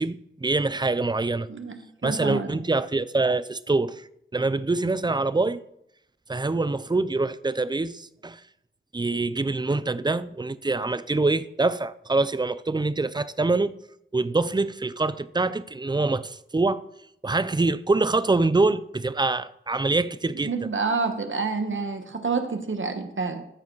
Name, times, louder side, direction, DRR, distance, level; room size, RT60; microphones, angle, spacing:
voice 1, 0.0-1.5 2.0-4.1 4.3-5.6 6.3-8.4 8.9-13.8 14.1-16.8 17.2-20.7, right 3 dB, 20° right, 0.5 m, -25 dB
voice 2, 2.0-2.6 20.4-23.4, right 4 dB, 65° right, 1.2 m, -28 dB
13.5 x 5.0 x 4.6 m
wide cardioid pair, 65°, 21 cm